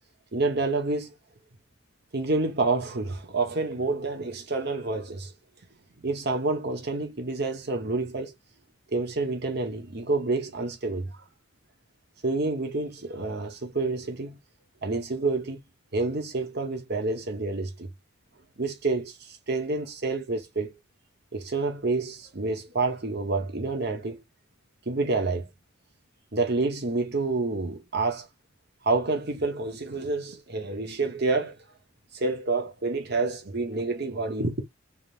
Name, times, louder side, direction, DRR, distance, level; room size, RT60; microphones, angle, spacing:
voice 1, 0.3-1.1 2.1-5.3 6.0-8.3 8.9-11.1 12.2-14.4 14.8-15.6 15.9-17.9 18.6-20.7 21.3-24.2 24.9-25.5 26.3-28.3 28.8-31.5 32.1-34.6, right 3 dB, 50° right, 1.1 m, -28 dB
4.1 x 3.7 x 2.4 m
head